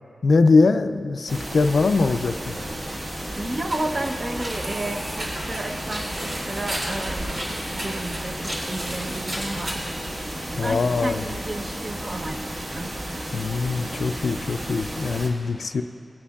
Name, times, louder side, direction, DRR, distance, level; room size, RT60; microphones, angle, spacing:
voice 1, 0.2-2.6 10.6-11.3 13.3-15.8, left 4 dB, 70° left, 9 dB, 0.3 m, -21 dB
sound 1, 1.3-15.3, right 1 dB, 55° right, 1.5 m, -33 dB
sound 2, 3.0-10.8, equal, 70° right, 2.6 m, -35 dB
voice 2, 3.4-10.0 10.5-12.9, right 2 dB, 35° right, 5 dB, 0.6 m, -32 dB
sound 3, 3.9-9.6, equal, 10° right, 1.5 m, -47 dB
18.5 x 9.7 x 2.3 m, 2.7 s
wide cardioid pair, 130°, 0 cm